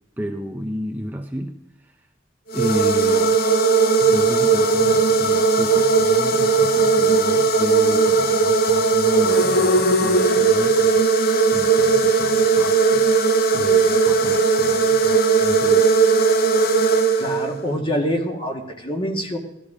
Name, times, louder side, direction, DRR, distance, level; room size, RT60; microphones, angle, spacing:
voice 1, 0.2-2.1 2.5-3.4 4.0-16.0, equal, 10° right, 3 dB, 0.7 m, -32 dB
sound 1, 2.5-17.7, right 4 dB, 50° left, 0.9 m, -17 dB
voice 2, 17.2-19.4, equal, 25° left, 3 dB, 2.0 m, -25 dB
16.5 x 13.0 x 5.0 m, 0.88 s
head